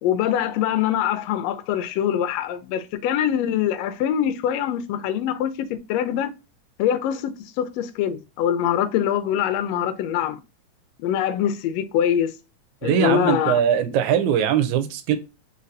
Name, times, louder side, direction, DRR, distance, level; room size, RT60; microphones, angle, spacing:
voice 1, 0.0-6.3 6.8-10.4 11.0-12.3 12.8-13.6, left 10 dB, 80° left, 1.6 m, -24 dB
voice 2, 12.8-15.2, right 9 dB, 85° right, 2.0 m, -21 dB
4.2 x 4.0 x 2.5 m
omnidirectional pair, 3.3 m